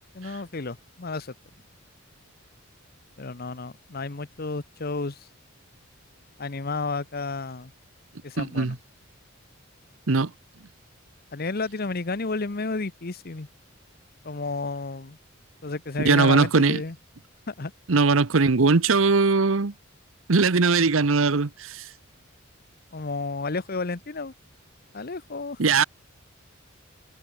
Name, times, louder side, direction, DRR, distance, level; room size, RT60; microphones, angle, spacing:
voice 1, 0.1-1.3 3.2-5.2 6.4-7.7 8.2-8.8 11.3-13.5 14.2-15.2 15.6-17.0 17.5-17.7 22.9-24.3 24.9-25.6, left 3 dB, 45° left, 0.9 m, -31 dB
voice 2, 8.4-8.8 10.1-10.3 16.0-16.8 17.9-19.7 20.3-21.8 25.6-25.8, right 4 dB, 75° right, 0.9 m, -20 dB
head